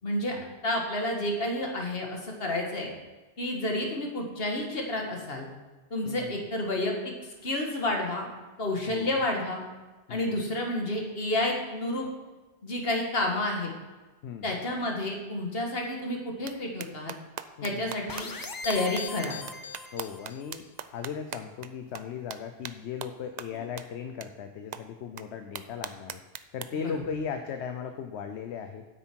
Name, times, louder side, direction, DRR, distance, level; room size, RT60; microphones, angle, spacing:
voice 1, 0.0-0.4 0.6-2.9 3.4-5.5 5.9-7.1 7.4-8.3 8.6-9.6 10.1-12.1 12.6-13.7 14.4-17.1 17.6-18.3 18.6-19.3 23.5-23.6 26.8-26.9, left 1 dB, 55° left, 1 dB, 1.9 m, -30 dB
voice 2, 6.0-6.5 8.9-9.2 10.1-10.4 14.2-14.6 17.6-17.9 19.9-20.6 20.9-26.2 26.5-28.9, left 7 dB, 75° left, 7 dB, 0.9 m, -37 dB
sound 1, 16.5-16.6 16.8-21.7 21.9-22.0 22.3-22.4 22.6-22.7 23.0-23.1 23.4-23.5 23.8-23.9 24.2-24.3 24.7-24.8 25.2-25.3 25.6-26.6, right 8 dB, 55° right, 0.5 m, -38 dB
comet high C portamento from low F, 18.1-20.5, left 4 dB, 35° left, 0.3 m, -39 dB
9.5 x 8.1 x 4.5 m, 1.2 s
omnidirectional pair, 1.2 m